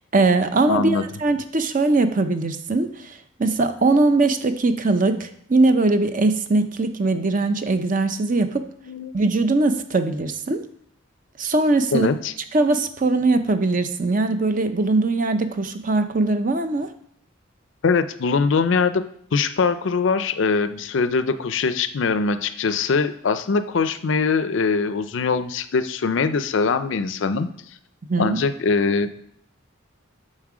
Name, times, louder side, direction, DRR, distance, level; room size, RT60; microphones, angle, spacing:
voice 1, 0.1-8.6 9.1-10.6 11.4-12.1 12.5-16.9 28.1-28.4, right 2 dB, 40° right, 9 dB, 0.6 m, -21 dB
voice 2, 0.7-1.1 8.9-9.1 11.9-12.3 17.8-19.0 19.3-27.5 28.2-29.2, left 4 dB, 65° left, 12 dB, 0.5 m, -22 dB
7.3 x 6.5 x 4.9 m, 0.67 s
head